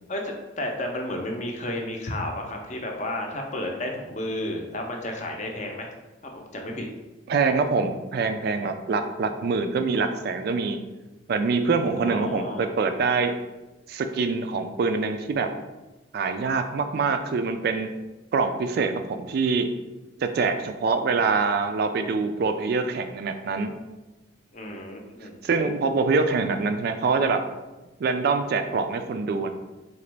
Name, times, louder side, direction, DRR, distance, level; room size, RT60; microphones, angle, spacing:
voice 1, 0.1-5.9 6.3-6.9 12.0-12.6 24.5-25.4, left 1 dB, 40° left, 1 dB, 0.5 m, -32 dB
voice 2, 7.3-10.8 11.3-13.3 13.9-15.5 16.1-17.9 18.3-19.7 20.2-23.7 25.4-27.4 28.0-29.5, right 4 dB, 55° right, 7 dB, 0.3 m, -25 dB
3.8 x 3.0 x 3.3 m, 1.1 s
head